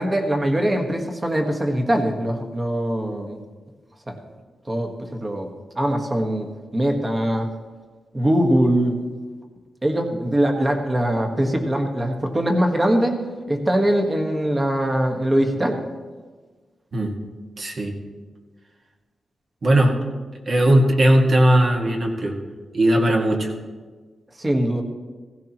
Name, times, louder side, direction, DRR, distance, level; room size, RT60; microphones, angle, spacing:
voice 1, 0.0-3.4 4.1-4.2 4.7-5.5 5.7-7.5 8.1-9.0 9.8-13.2 13.5-15.8 24.4-24.8, right 1 dB, 20° right, 3 dB, 1.4 m, -22 dB
voice 2, 17.6-17.9 19.6-19.9 20.5-22.3 22.7-23.5, right 1 dB, 45° right, 1 dB, 1.8 m, -18 dB
16.0 x 16.0 x 3.0 m, 1.4 s
wide cardioid pair, 115°, 0 cm